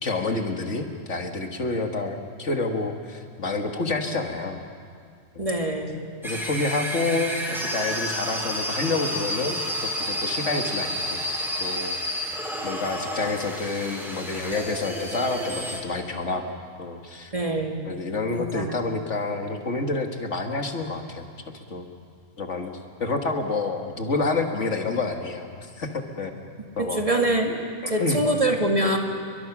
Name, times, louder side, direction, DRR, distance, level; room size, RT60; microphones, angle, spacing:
voice 1, 0.0-4.6 5.4-5.5 6.2-11.2 11.6-16.4 16.8-17.3 17.9-21.2 21.5-21.9 22.4-22.7 23.0-26.3 26.8-27.0 27.4-28.2, left 3 dB, 70° left, 4 dB, 2.1 m, -28 dB
voice 2, 5.4-6.0 17.3-17.8 18.3-19.0 26.8-27.5 27.9-29.0, right 1 dB, 25° right, 1 dB, 2.3 m, -24 dB
sound 1, 6.2-15.8, equal, ahead, 3.7 m, -30 dB
29.5 x 23.0 x 6.1 m, 2.2 s
omnidirectional pair, 1.3 m